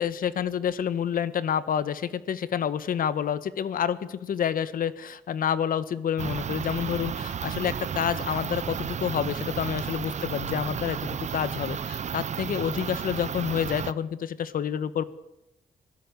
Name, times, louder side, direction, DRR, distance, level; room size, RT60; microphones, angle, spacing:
voice 1, 0.0-15.0, left 8 dB, 70° left, 15 dB, 1.4 m, -28 dB
sound 1, 6.2-13.9, right 8 dB, 50° right, 0.8 m, -33 dB
26.0 x 17.0 x 8.2 m, 0.92 s
cardioid pair, 100°, 15 cm